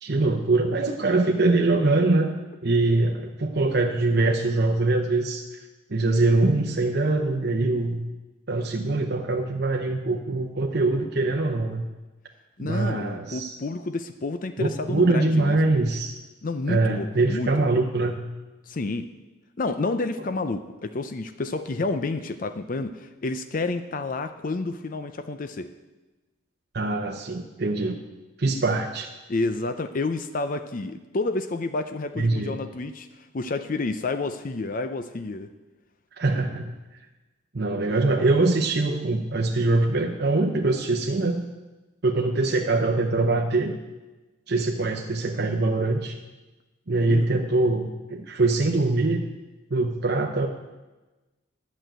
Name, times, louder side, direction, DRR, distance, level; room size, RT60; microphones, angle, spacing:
voice 1, 0.0-2.3 2.6-5.6 5.9-8.0 8.5-11.9 12.6-13.6 14.6-16.1 16.7-18.2 26.7-28.0 28.4-29.1 32.2-32.5 36.1-36.7 37.5-41.4 42.0-43.8 44.5-46.2 46.9-49.3 49.7-50.5, right 2 dB, 50° right, 1 dB, 0.8 m, -23 dB
voice 2, 12.6-15.7 16.4-17.7 18.6-19.1 19.6-25.7 29.3-33.1 33.3-35.5 47.1-47.3, left 3 dB, 40° left, 10 dB, 0.5 m, -30 dB
11.0 x 6.3 x 9.1 m, 1.1 s
head